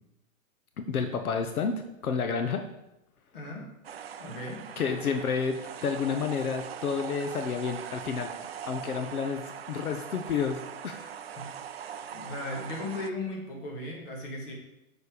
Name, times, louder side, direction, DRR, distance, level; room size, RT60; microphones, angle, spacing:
voice 1, 0.8-1.7 2.0-2.6 4.8-8.3 8.6-9.4 9.7-11.1, left 6 dB, 90° left, 6 dB, 1.1 m, -30 dB
voice 2, 3.3-3.6 4.2-4.6 9.7-9.8 11.4-11.5 12.1-14.5, left 2 dB, 40° left, -1 dB, 2.5 m, -37 dB
sound 1, 3.8-13.1, right 8 dB, 45° right, 0.4 m, -41 dB
7.1 x 6.6 x 4.9 m, 0.89 s
hypercardioid pair, 170°, 42 cm